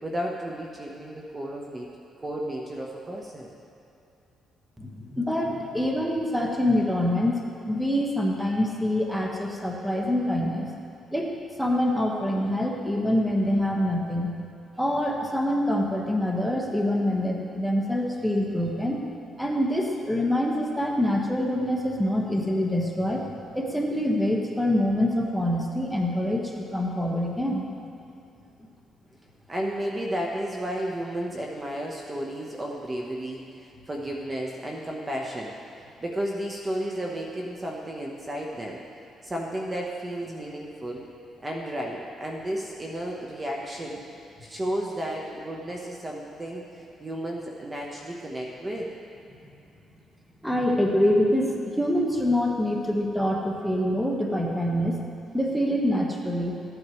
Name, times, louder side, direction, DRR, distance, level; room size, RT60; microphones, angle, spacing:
voice 1, 0.0-1.9 2.2-3.5 29.5-38.8 39.2-41.1 41.4-44.0 44.4-48.9, right 1 dB, 25° right, -1 dB, 1.1 m, -33 dB
voice 2, 4.8-7.3 7.7-10.7 11.1-11.3 11.6-14.3 14.8-19.0 19.4-23.2 23.5-26.4 26.7-27.7 50.4-55.0 55.3-56.5, left 1 dB, ahead, -1 dB, 1.3 m, -25 dB
14.5 x 8.8 x 3.2 m, 2.7 s
cardioid pair, 90°, 0 cm